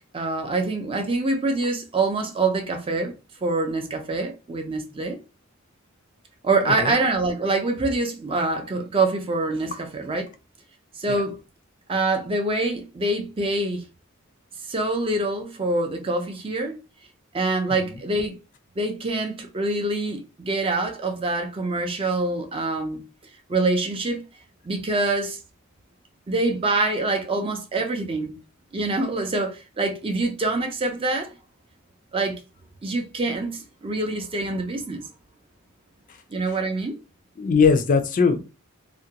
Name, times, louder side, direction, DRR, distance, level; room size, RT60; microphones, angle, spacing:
voice 1, 0.1-3.1 3.4-5.2 6.4-10.3 11.0-11.4 11.9-13.9 14.6-16.8 17.3-18.4 18.8-23.0 23.5-24.2 24.6-25.4 26.3-28.4 28.7-31.3 32.1-32.4 32.8-35.1 36.3-36.9, right 2 dB, 25° right, 0.4 m, -25 dB
voice 2, 37.4-38.4, left 5 dB, 40° left, 0.4 m, -20 dB
2.4 x 2.2 x 2.8 m
head